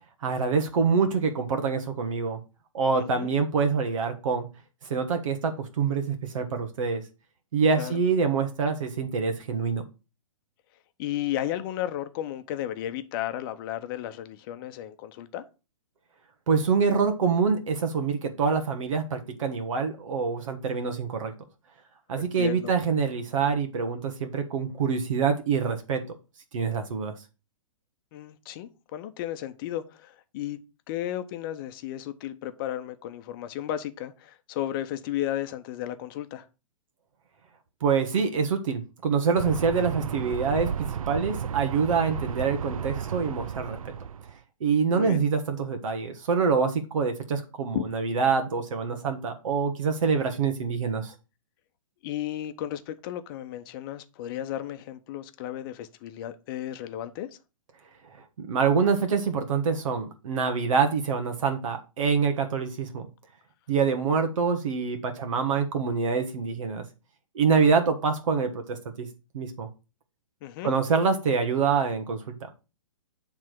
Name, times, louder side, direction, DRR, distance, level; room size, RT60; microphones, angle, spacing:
voice 1, 0.2-2.4 2.7-4.4 4.8-7.0 7.5-9.8 16.5-21.3 22.1-26.0 26.5-27.1 37.8-40.7 41.1-43.9 44.6-51.1 58.4-63.1 63.7-66.8 67.3-69.1 69.3-69.7 70.6-72.4, right 5 dB, 65° right, 1.4 m, -25 dB
voice 2, 2.9-3.3 7.8-7.9 11.0-15.4 22.2-22.7 28.1-30.6 30.9-36.4 44.9-45.3 47.7-47.9 52.0-57.3 70.4-70.7, left 12 dB, 40° left, 0.8 m, -34 dB
sound 1, 39.4-44.3, right 7 dB, 85° right, 0.5 m, -33 dB
7.4 x 3.6 x 6.2 m
hypercardioid pair, 130°, 17 cm